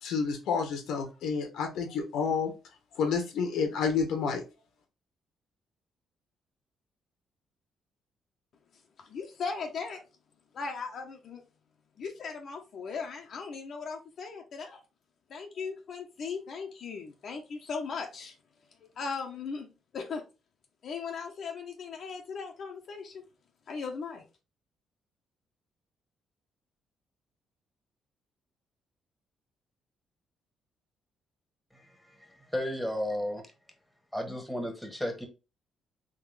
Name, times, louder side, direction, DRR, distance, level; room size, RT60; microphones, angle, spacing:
voice 1, 0.0-2.5 3.0-4.4, left 5 dB, 85° left, 1.1 m, -29 dB
voice 2, 9.1-10.0 10.5-11.4 12.0-14.8 15.3-18.3 19.0-20.2 20.8-23.2 23.7-24.2, left 5 dB, 60° left, 0.8 m, -38 dB
voice 3, 32.2-33.4 34.1-35.3, equal, 5° left, 1.3 m, -33 dB
3.8 x 3.1 x 3.2 m
cardioid pair, 90°, 0 cm